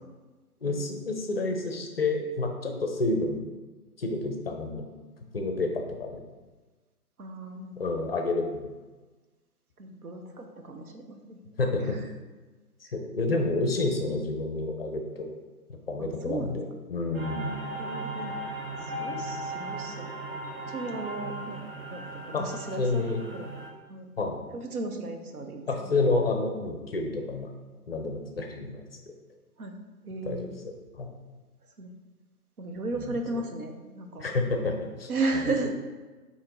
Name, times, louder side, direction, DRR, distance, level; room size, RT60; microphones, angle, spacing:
voice 1, 0.6-3.4 4.0-4.8 5.3-6.2 7.8-8.7 11.6-12.0 12.9-15.3 15.7-17.6 22.3-22.5 22.8-23.2 24.2-24.4 25.7-27.5 27.9-28.8 30.2-30.4 30.6-31.1 33.0-33.4 34.2-35.1 35.4-35.5, left 3 dB, 40° left, 3 dB, 0.5 m, -29 dB
voice 2, 7.2-7.9 9.8-11.4 11.8-12.0 12.8-12.9 13.3-13.5 16.0-16.6 17.7-18.4 18.8-20.1 20.7-21.6 21.9-23.5 23.9-24.1 24.6-25.9 29.6-29.7 30.1-30.5 31.8-31.9 32.6-34.2 35.1-35.7, right 3 dB, 70° right, 4 dB, 0.8 m, -35 dB
sound 1, 17.1-23.7, right 1 dB, 40° right, 0.7 m, -37 dB
4.4 x 2.9 x 3.7 m, 1.3 s
figure-of-eight pair, 130°, 47 cm